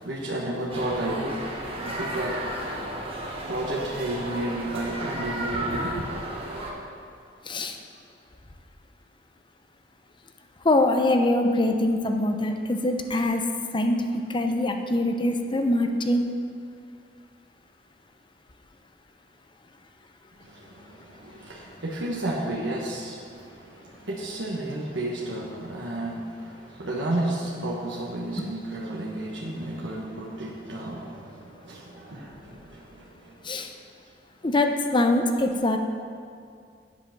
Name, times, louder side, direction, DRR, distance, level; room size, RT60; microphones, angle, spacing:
voice 1, 0.0-6.1 20.4-33.5, right 1 dB, 85° right, -5 dB, 1.3 m, -32 dB
sound 1, 0.7-6.7, right 1 dB, 30° right, 1.3 m, -34 dB
voice 2, 7.5-7.8 10.6-13.4 13.7-14.0 14.3-16.2 33.4-33.7 34.4-35.8, left 1 dB, 25° left, 5 dB, 0.7 m, -23 dB
8.5 x 7.4 x 5.9 m, 2.3 s
head